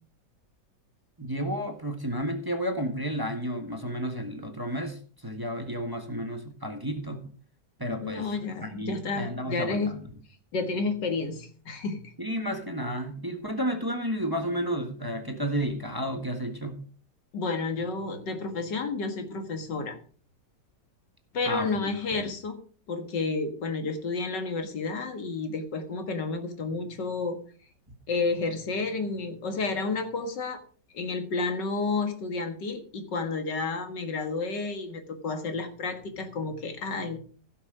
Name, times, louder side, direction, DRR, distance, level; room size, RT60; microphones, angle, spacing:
voice 1, 1.2-7.3 7.8-10.0 12.2-16.8 21.4-21.8 22.1-22.3, equal, 15° right, 5 dB, 1.3 m, -32 dB
voice 2, 8.0-10.0 10.5-12.1 17.3-20.0 21.3-22.6 22.9-27.4 28.1-30.6 30.9-37.2, left 3 dB, 90° left, 6 dB, 2.3 m, -31 dB
15.5 x 6.3 x 4.9 m, 0.42 s
omnidirectional pair, 1.8 m